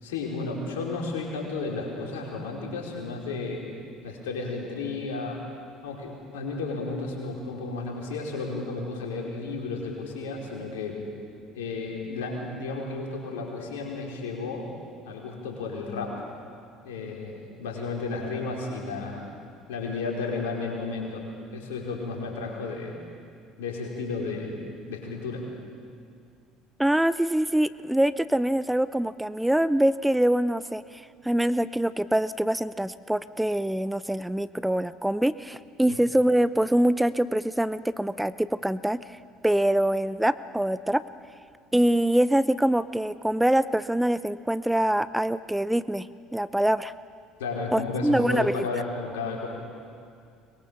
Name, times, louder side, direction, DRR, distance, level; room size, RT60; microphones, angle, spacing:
voice 1, 0.0-3.6 4.0-5.4 5.8-11.0 11.5-14.6 15.0-16.2 16.8-19.3 19.7-21.2 21.5-23.0 23.6-25.4 35.9-36.0 47.4-49.5, left 3 dB, 85° left, -2 dB, 4.7 m, -33 dB
voice 2, 26.8-30.8 31.2-39.0 39.4-41.0 41.7-46.1 46.3-46.9 47.7-48.5, right 1 dB, 5° right, 15 dB, 0.6 m, -24 dB
23.5 x 21.5 x 7.1 m, 2.3 s
hypercardioid pair, 70°, 0 cm